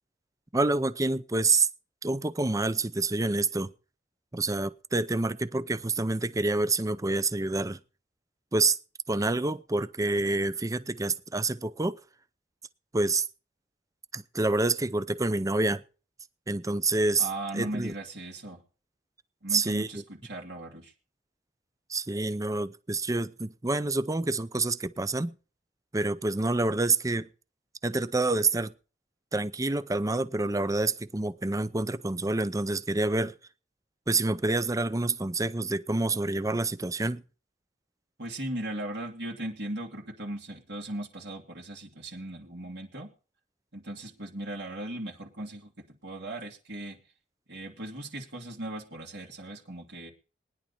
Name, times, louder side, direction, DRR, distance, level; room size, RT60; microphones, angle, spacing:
voice 1, 0.5-1.7 2.0-3.7 4.3-7.8 8.5-8.8 9.1-12.0 12.9-13.2 14.1-15.8 16.5-17.3 17.5-17.9 19.5-20.0 21.9-25.4 25.9-27.3 27.8-28.7 29.3-33.3 34.1-37.2, right 2 dB, 20° right, 0.6 m, -27 dB
voice 2, 17.2-18.6 19.4-20.9 38.2-43.1 43.7-45.7 46.0-47.0 47.5-50.1, right 1 dB, 70° right, 2.6 m, -38 dB
20.0 x 10.5 x 4.2 m
head